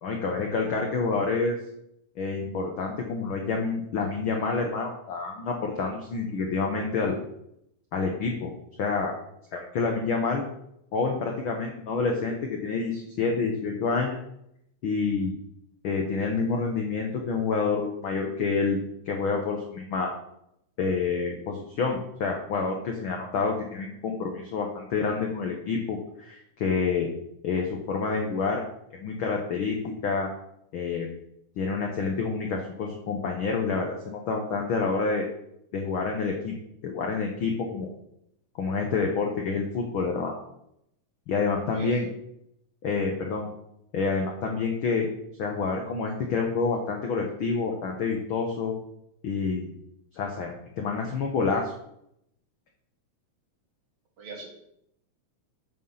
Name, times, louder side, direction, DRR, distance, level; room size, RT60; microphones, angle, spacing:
voice 1, 0.0-1.6 2.2-7.2 7.9-8.5 8.8-9.1 9.5-10.6 10.9-14.2 14.8-15.3 15.8-18.8 19.1-20.1 20.8-27.1 27.4-28.6 29.0-29.8 30.0-30.3 30.7-31.1 31.6-35.3 35.7-36.5 36.8-37.9 38.6-40.4 41.3-42.1 42.8-43.5 43.9-45.1 45.4-48.8 49.2-49.7 50.1-51.7, left 4 dB, 75° left, 1 dB, 1.1 m, -28 dB
voice 2, 41.7-42.1 54.2-54.5, right 3 dB, 55° right, 1 dB, 2.1 m, -39 dB
7.5 x 6.5 x 5.6 m, 0.78 s
omnidirectional pair, 3.7 m